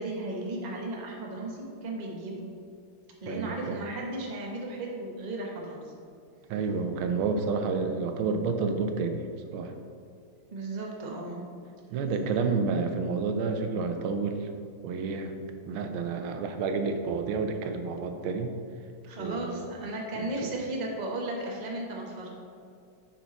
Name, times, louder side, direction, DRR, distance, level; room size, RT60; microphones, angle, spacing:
voice 1, 0.0-2.5 3.2-5.9 10.5-11.4 12.0-12.4 19.0-22.3, right 2 dB, 30° right, -1 dB, 0.9 m, -35 dB
voice 2, 3.3-3.8 6.5-9.7 11.9-14.5 14.8-15.3 15.7-18.5 19.2-19.7 20.2-20.5, right 4 dB, 85° right, 6 dB, 1.5 m, -30 dB
10.5 x 4.6 x 4.0 m, 2.3 s
omnidirectional pair, 2.2 m